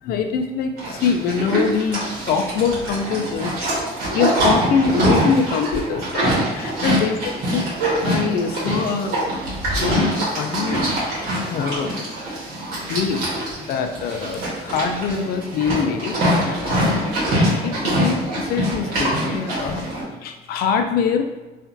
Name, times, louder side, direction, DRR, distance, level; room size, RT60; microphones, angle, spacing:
voice 1, 0.0-3.6 4.1-7.2 7.5-7.6 8.0-9.2 9.7-12.2 12.9-13.3 13.6-16.2 16.4-19.8 20.2-21.3, left 6 dB, 65° left, 6 dB, 0.4 m, -24 dB
Livestock farm animals working animals, 0.8-20.0, right 1 dB, 60° right, 1.3 m, -24 dB
2.8 x 2.4 x 2.5 m, 1.1 s
cardioid pair, 110°, 17 cm